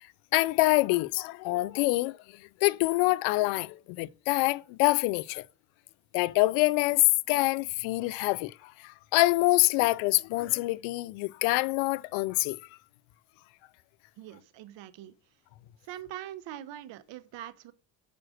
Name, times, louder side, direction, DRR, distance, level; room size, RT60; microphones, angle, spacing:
voice 1, 0.3-2.2 2.6-5.4 6.1-12.6, left 21 dB, 85° left, 0.5 m, -26 dB
voice 2, 14.2-15.1 15.8-17.7, right 12 dB, 65° right, 0.9 m, -43 dB
6.3 x 5.0 x 6.3 m
supercardioid pair, 80°, 46 cm